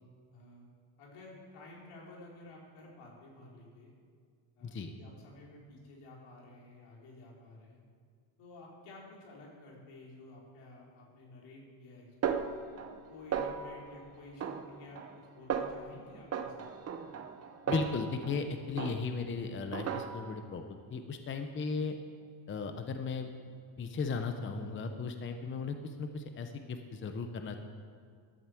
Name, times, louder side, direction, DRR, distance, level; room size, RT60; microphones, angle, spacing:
voice 1, 0.3-0.7 1.0-3.9 4.6-7.8 8.4-12.5 13.1-16.7, left 2 dB, 85° left, -3 dB, 3.7 m, -52 dB
voice 2, 4.6-4.9 17.7-22.0 22.5-23.3 23.8-27.6, left 4 dB, 25° left, 7 dB, 0.7 m, -36 dB
Snare drum, 12.2-13.0 13.3-13.9 14.4-15.2 15.5-15.9 16.3-18.4 18.8-19.3 19.7-20.4, right 7 dB, 30° right, 0.8 m, -36 dB
12.0 x 7.9 x 7.7 m, 2.1 s
cardioid pair, 140°, 50 cm